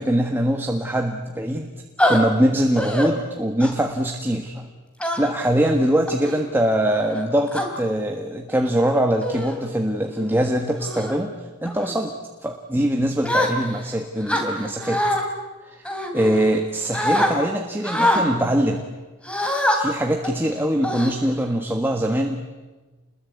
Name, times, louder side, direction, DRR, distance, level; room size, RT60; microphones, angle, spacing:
voice 1, 0.0-1.7 2.1-4.7 5.2-15.0 15.7-15.8 16.1-18.8 19.7-22.4, right 1 dB, 10° right, 3 dB, 1.4 m, -22 dB
sound 1, 2.0-2.2 2.8-3.1 3.6-3.9 5.0-5.4 6.1-6.4 7.1-7.7 8.5-8.7 9.2-9.6 10.1-10.3 10.8-11.1 11.6-11.9 13.2-13.9 14.3-15.2 15.8-16.6 16.9-17.3 17.8-18.2 19.2-19.8 20.2-20.4 20.8-21.5, left 1 dB, 5° left, 3.1 m, -24 dB
29.0 x 21.5 x 8.5 m, 1.3 s
head